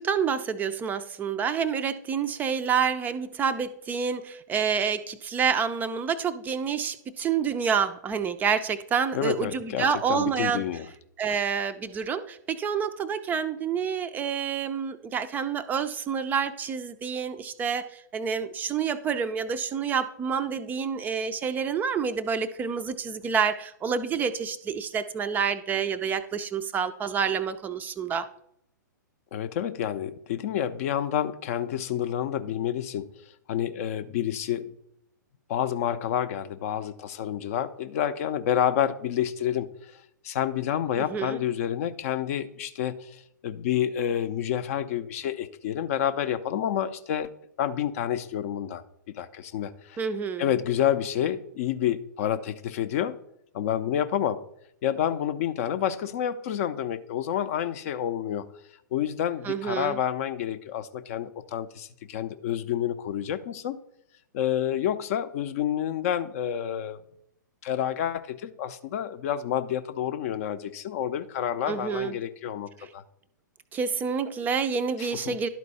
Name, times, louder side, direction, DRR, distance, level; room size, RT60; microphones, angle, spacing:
voice 1, 0.0-10.6 11.2-28.3 41.1-41.4 50.0-50.5 59.4-60.0 71.7-72.1 72.8-72.9 73.7-75.5, right 6 dB, 15° right, 11 dB, 0.4 m, -28 dB
voice 2, 9.1-10.9 29.3-33.1 33.5-34.7 35.5-47.3 47.6-50.0 50.4-53.2 53.5-54.4 54.8-58.5 58.9-63.8 64.3-67.0 67.6-73.0 75.0-75.4, left 10 dB, 45° left, 13 dB, 0.5 m, -29 dB
11.5 x 4.5 x 4.1 m, 0.74 s
figure-of-eight pair, 115°, 11 cm